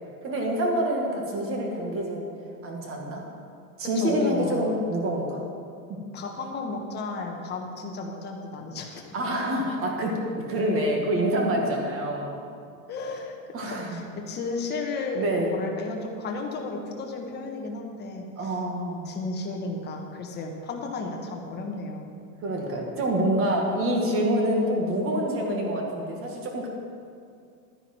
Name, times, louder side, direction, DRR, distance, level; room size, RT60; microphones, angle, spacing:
voice 1, 0.2-2.2 2.6-3.2 3.8-5.4 5.9-6.0 9.1-12.3 13.5-14.0 15.2-15.5 18.4-19.1 22.4-26.7, right 1 dB, 30° right, 0 dB, 1.9 m, -26 dB
voice 2, 3.9-4.6 6.1-9.0 12.9-13.3 13.7-18.6 19.0-22.1, left 3 dB, 25° left, 1 dB, 1.3 m, -33 dB
12.0 x 9.9 x 4.5 m, 2.4 s
supercardioid pair, 145°, 43 cm